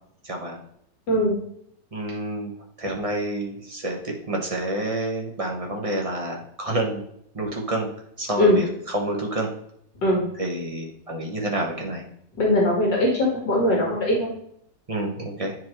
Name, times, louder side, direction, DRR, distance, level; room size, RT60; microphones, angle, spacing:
voice 1, 0.2-0.6 1.9-2.5 2.8-7.0 7.3-7.9 8.2-9.5 10.4-12.0 14.9-15.6, right 1 dB, 20° right, 0 dB, 1.2 m, -28 dB
voice 2, 12.4-13.1 13.5-14.3, left 1 dB, 75° left, -2 dB, 2.5 m, -20 dB
10.0 x 4.6 x 3.2 m, 0.69 s
omnidirectional pair, 1.9 m